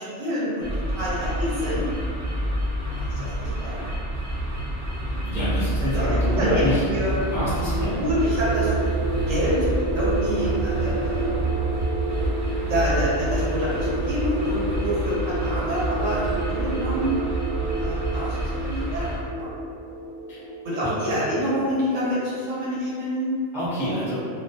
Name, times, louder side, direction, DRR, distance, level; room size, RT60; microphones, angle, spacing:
voice 1, 0.0-1.9 2.9-3.8 5.9-6.5 6.9-7.1 7.9-8.7 9.3-9.7 9.9-11.3 12.7-17.1 17.8-19.6 20.6-23.3 23.8-24.3, equal, 85° right, -8 dB, 1.1 m, -27 dB
sound 1, 0.6-19.2, right 1 dB, 55° right, 0.9 m, -28 dB
voice 2, 5.2-6.8 7.3-8.0 20.3-20.4 20.8-20.9 23.5-24.2, left 1 dB, 5° right, -12 dB, 0.5 m, -26 dB
sound 2, 6.8-21.2, right 3 dB, 65° left, 0.4 m, -31 dB
2.2 x 2.1 x 2.7 m, 2.3 s
omnidirectional pair, 1.3 m